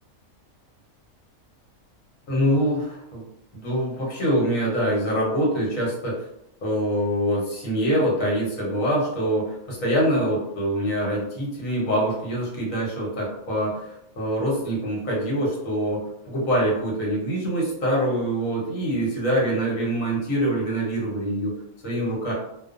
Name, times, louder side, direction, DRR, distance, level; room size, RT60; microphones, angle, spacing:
voice 1, 2.3-3.2 3.5-6.1 6.6-21.5 21.8-22.3, equal, 70° left, -4 dB, 1.3 m, -24 dB
2.4 x 2.4 x 2.4 m, 0.81 s
omnidirectional pair, 1.4 m